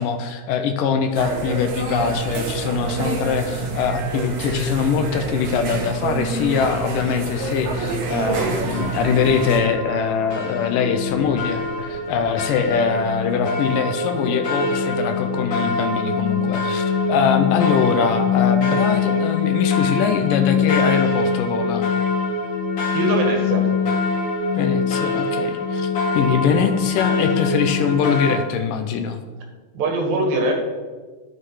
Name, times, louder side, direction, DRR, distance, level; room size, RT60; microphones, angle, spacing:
voice 1, 0.0-21.9 24.5-29.2, left 6 dB, 80° left, 7 dB, 2.3 m, -22 dB
sound 1, 1.1-9.6, right 3 dB, 60° right, 2.5 m, -27 dB
sound 2, 8.7-28.4, left 5 dB, 45° left, 1.8 m, -23 dB
voice 2, 22.9-23.7 29.7-30.5, right 2 dB, 80° right, 2 dB, 3.5 m, -22 dB
12.0 x 7.8 x 4.8 m, 1.4 s
omnidirectional pair, 4.1 m